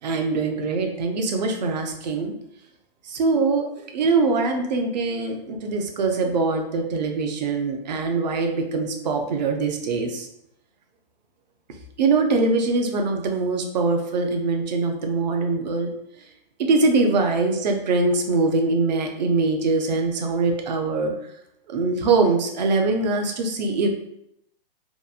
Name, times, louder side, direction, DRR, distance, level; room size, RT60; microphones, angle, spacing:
voice 1, 0.0-2.3 3.1-10.3 12.0-15.9 16.6-21.1 21.7-23.9, right 3 dB, 50° right, 4 dB, 0.5 m, -23 dB
2.9 x 2.5 x 2.4 m, 0.77 s
hypercardioid pair, 165°, 29 cm